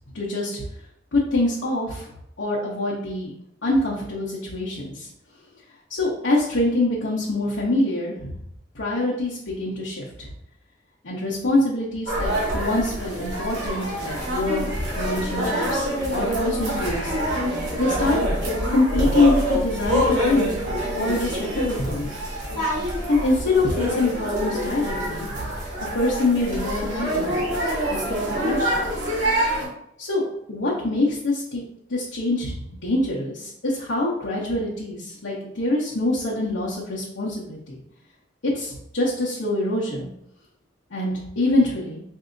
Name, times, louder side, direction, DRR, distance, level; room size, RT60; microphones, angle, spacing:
voice 1, 0.1-0.6 1.1-2.1 2.4-3.3 3.6-5.1 5.9-8.4 8.7-10.3 11.0-17.1 17.8-18.2 18.7-20.6 20.9-22.1 23.1-25.5 25.9-27.5 27.8-28.8 30.0-31.6 31.9-37.8 38.4-40.1 40.9-42.0, left 2 dB, 90° left, -7 dB, 0.9 m, -25 dB
sound 1, 12.1-29.7, equal, 60° right, 1.4 m, -26 dB
4.7 x 2.7 x 2.6 m, 0.75 s
head